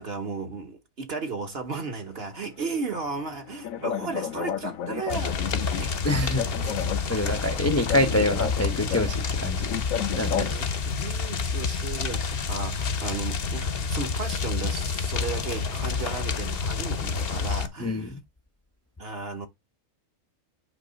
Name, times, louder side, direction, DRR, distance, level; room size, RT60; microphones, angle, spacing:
voice 1, 0.0-6.0 7.0-7.9 9.6-9.7 10.0-18.1 19.0-19.5, right 4 dB, 45° right, 1.5 m, -35 dB
sound 1, 3.0-10.6, left 9 dB, 70° left, 1.1 m, -33 dB
sound 2, 5.1-17.7, left 5 dB, 50° left, 0.9 m, -29 dB
voice 2, 6.0-9.7 10.2-10.6 17.8-18.2, left 1 dB, 15° left, 0.6 m, -26 dB
9.9 x 3.3 x 5.2 m
omnidirectional pair, 1.5 m